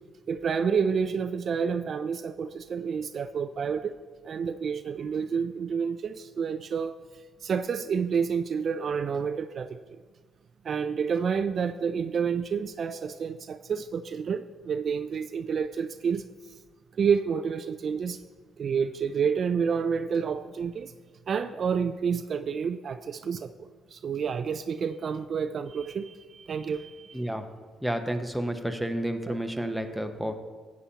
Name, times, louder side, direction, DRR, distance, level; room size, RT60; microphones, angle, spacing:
voice 1, 0.3-7.0 7.4-9.8 10.6-16.2 17.0-18.2 18.6-20.9 21.3-27.2 29.2-29.4, right 6 dB, 55° right, 9 dB, 0.3 m, -29 dB
voice 2, 27.1-27.4 27.8-30.3, right 1 dB, ahead, 5 dB, 0.9 m, -30 dB
12.0 x 8.4 x 2.9 m, 1.4 s
cardioid pair, 90°, 0 cm